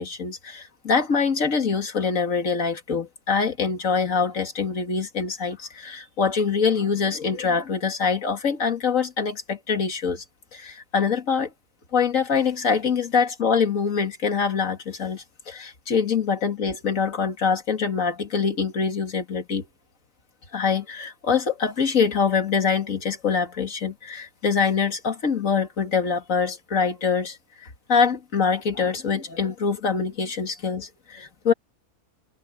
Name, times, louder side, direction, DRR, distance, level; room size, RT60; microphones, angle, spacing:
voice 1, 0.0-10.2 10.5-11.5 11.9-19.6 20.5-31.5, left 5 dB, 60° left, 2.5 m, -24 dB
omnidirectional pair, 1.5 m